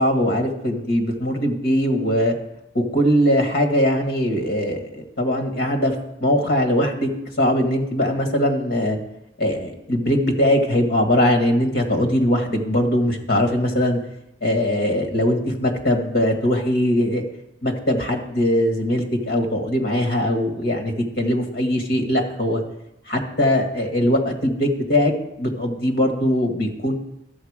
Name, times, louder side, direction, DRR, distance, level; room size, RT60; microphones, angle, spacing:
voice 1, 0.0-2.3 2.7-5.9 6.2-7.1 7.4-9.0 9.4-14.0 14.4-17.2 17.6-22.6 23.1-25.1 25.4-26.9, left 1 dB, 55° left, 4 dB, 1.7 m, -21 dB
12.5 x 7.2 x 4.9 m, 0.85 s
head